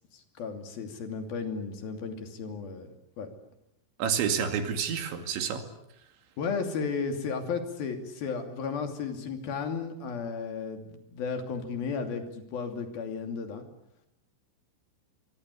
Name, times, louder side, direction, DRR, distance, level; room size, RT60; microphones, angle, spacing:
voice 1, 0.1-2.9 3.2-3.3 6.4-13.6, left 5 dB, 50° left, 6 dB, 4.3 m, -34 dB
voice 2, 4.0-5.6, right 7 dB, 70° right, 6 dB, 4.5 m, -29 dB
25.0 x 24.5 x 8.5 m, 0.79 s
omnidirectional pair, 5.8 m